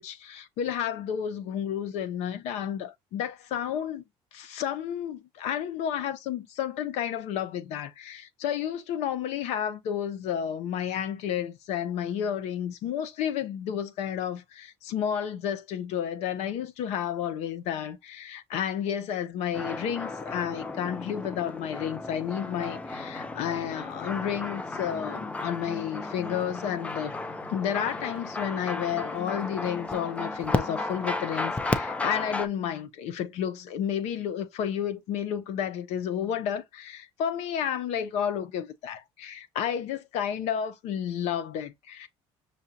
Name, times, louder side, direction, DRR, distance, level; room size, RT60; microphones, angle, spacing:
voice 1, 0.0-4.0 4.3-27.1 27.5-42.1, left 9 dB, 75° left, 0.9 m, -31 dB
sound 1, 19.5-32.5, left 2 dB, 10° left, 0.4 m, -34 dB
sound 2, 22.9-31.4, left 5 dB, 45° left, 3.1 m, -47 dB
6.3 x 2.4 x 2.7 m
cardioid pair, 130°, 11 cm